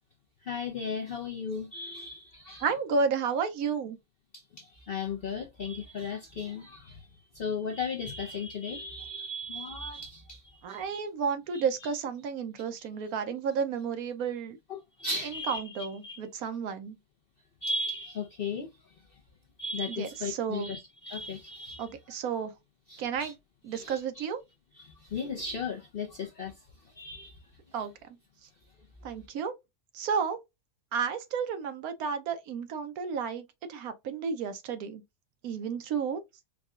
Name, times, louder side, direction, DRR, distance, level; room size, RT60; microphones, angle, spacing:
voice 1, 0.4-2.7 4.3-11.0 11.5-11.6 14.7-16.2 17.6-18.7 19.6-21.9 22.9-23.3 23.7-24.2 24.8-26.5 26.9-27.4, left 4 dB, 55° left, 0.6 m, -36 dB
voice 2, 2.6-4.0 10.6-14.6 15.2-17.0 19.9-20.7 21.8-22.5 23.0-23.4 23.6-24.4 27.7-27.9 29.0-29.5 29.9-30.4 30.9-35.0 35.4-36.2, right 6 dB, 70° right, 1.1 m, -32 dB
4.7 x 2.3 x 2.4 m
omnidirectional pair, 1.7 m